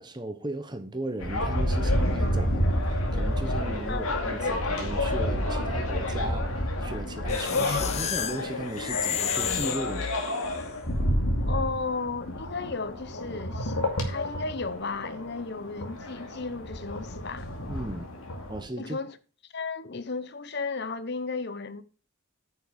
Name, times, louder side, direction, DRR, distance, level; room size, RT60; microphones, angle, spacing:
voice 1, 0.0-10.2 17.7-18.1 18.5-19.0, right 1 dB, 20° right, 1.0 m, -37 dB
sound 1, 1.2-18.6, left 1 dB, 90° left, 2.4 m, -29 dB
sound 2, 7.3-10.5, left 8 dB, 30° left, 0.4 m, -31 dB
voice 2, 11.5-13.7 14.1-17.5 18.8-19.1 19.5-21.8, left 4 dB, 50° left, 0.9 m, -34 dB
9.5 x 6.6 x 5.2 m
head